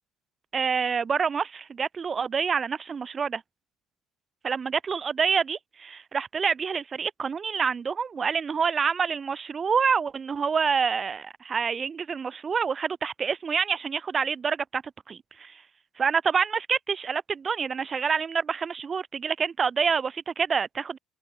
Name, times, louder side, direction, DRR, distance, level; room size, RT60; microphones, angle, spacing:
voice 1, 0.5-3.4 4.4-14.8 15.1-15.6 16.0-21.0, right 6 dB, 40° right, 1.0 m, -27 dB
supercardioid pair, 70°, 0 cm